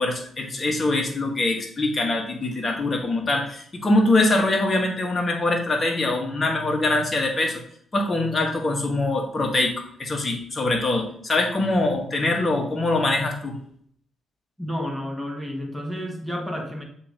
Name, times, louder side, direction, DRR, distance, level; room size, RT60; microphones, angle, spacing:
voice 1, 0.0-7.6 7.9-13.5, left 2 dB, 30° left, 0 dB, 2.0 m, -23 dB
voice 2, 14.6-16.8, equal, ahead, 0 dB, 1.5 m, -31 dB
6.8 x 3.0 x 5.2 m, 0.64 s
cardioid pair, 80°, 0 cm